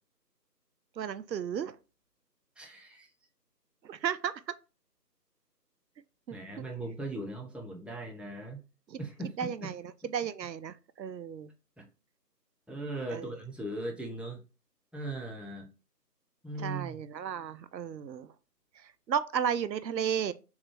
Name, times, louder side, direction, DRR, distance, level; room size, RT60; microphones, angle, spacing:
voice 1, 1.0-1.8 3.8-4.3 6.3-6.4 8.9-9.0 9.4-11.5 13.1-13.4 16.6-18.3 19.1-20.3, right 8 dB, 85° right, 0.6 m, -33 dB
voice 2, 2.6-3.1 6.3-8.6 9.0-9.7 11.8-11.9 12.7-14.4 14.9-15.7 16.4-17.0, right 2 dB, ahead, 0.4 m, -39 dB
3.5 x 3.1 x 3.4 m
figure-of-eight pair, 170°, 50 cm